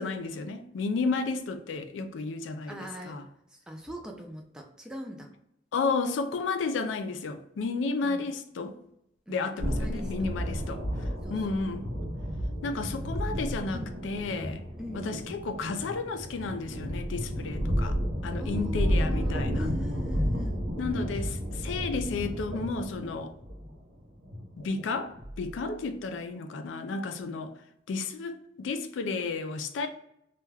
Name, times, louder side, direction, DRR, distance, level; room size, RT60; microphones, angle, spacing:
voice 1, 0.0-3.2 5.7-8.7 9.3-10.8 11.3-11.8 12.6-14.6 14.9-17.9 18.2-19.7 20.8-23.3 24.6-27.5 27.9-29.9, left 4 dB, 85° left, 0.4 m, -32 dB
voice 2, 2.7-3.2 3.5-5.3 8.0-8.3 9.3-10.7 11.2-11.6 13.1-13.2 13.7-14.0 14.8-15.1 18.4-20.6, equal, 5° right, 0.3 m, -42 dB
sound 1, 9.6-25.8, equal, 90° right, 0.7 m, -32 dB
2.3 x 2.1 x 3.2 m
head